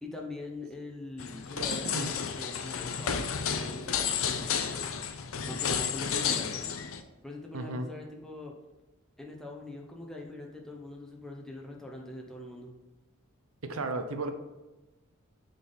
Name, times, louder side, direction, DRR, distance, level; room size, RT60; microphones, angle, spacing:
voice 1, 0.0-4.9 5.4-6.7 7.2-8.5 9.2-12.7, left 2 dB, ahead, -1 dB, 0.9 m, -42 dB
sound 1, 1.2-7.0, left 7 dB, 70° left, 0.5 m, -32 dB
voice 2, 7.5-7.9 13.6-14.3, right 2 dB, 75° right, 7 dB, 0.7 m, -34 dB
6.9 x 3.9 x 4.0 m, 1.1 s
head